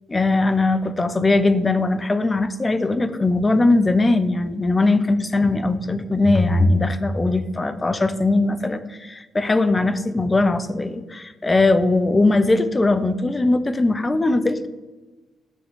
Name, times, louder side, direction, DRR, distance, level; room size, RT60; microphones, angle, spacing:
voice 1, 0.1-14.7, left 2 dB, 25° left, 13 dB, 0.6 m, -20 dB
9.1 x 6.9 x 3.7 m, 1.2 s
cardioid pair, 90°, 0 cm